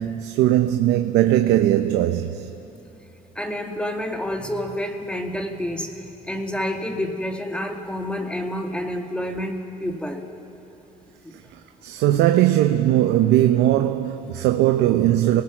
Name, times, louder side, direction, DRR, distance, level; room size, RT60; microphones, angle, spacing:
voice 1, 0.0-2.5 11.8-15.4, right 13 dB, 90° right, 0.8 m, -19 dB
voice 2, 3.4-10.2 11.2-11.3, left 1 dB, 5° left, 1.9 m, -29 dB
30.0 x 19.0 x 6.0 m
cardioid pair, 110°, 17 cm